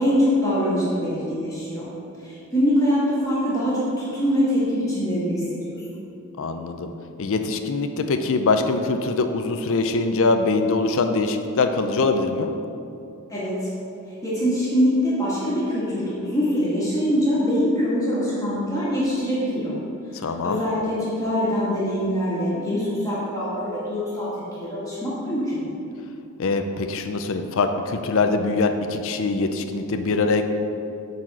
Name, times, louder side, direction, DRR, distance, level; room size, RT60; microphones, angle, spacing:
voice 1, 0.0-1.9 2.2-5.7 13.3-13.7 14.2-19.8 20.2-25.6, equal, 15° left, -9 dB, 1.7 m, -23 dB
voice 2, 6.4-6.9 7.2-12.5 20.2-20.6 26.4-30.4, left 3 dB, 60° left, 7 dB, 0.5 m, -23 dB
8.8 x 4.2 x 6.1 m, 2.6 s
head